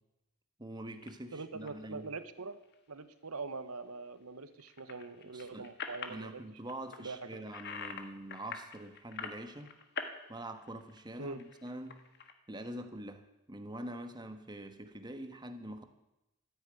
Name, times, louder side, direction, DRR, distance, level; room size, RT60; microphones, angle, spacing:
voice 1, 0.6-2.1 5.2-5.7 6.1-9.7 10.3-12.0 12.5-15.8, right 1 dB, 20° right, 7 dB, 1.3 m, -45 dB
sound 1, 1.0-1.1 1.7-1.9 2.4-2.7 4.6-6.2 6.7-8.0 8.3-10.1 10.5-12.3, left 5 dB, 50° left, 1.5 m, -44 dB
voice 2, 1.3-2.6 2.9-6.4 7.0-7.4 11.2-11.5, right 3 dB, 85° right, 12 dB, 1.1 m, -43 dB
13.5 x 10.5 x 9.0 m, 0.93 s
head